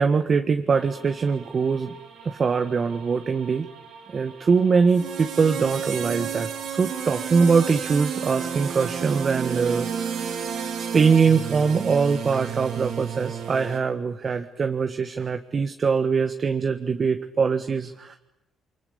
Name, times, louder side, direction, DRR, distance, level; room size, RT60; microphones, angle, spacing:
voice 1, 0.0-2.0 2.2-3.7 4.1-10.4 10.9-18.2, right 5 dB, 45° right, 7 dB, 1.6 m, -23 dB
sound 1, 0.7-13.8, right 7 dB, 80° right, 4.2 m, -33 dB
28.0 x 24.5 x 8.6 m, 0.93 s
cardioid pair, 90°, 0 cm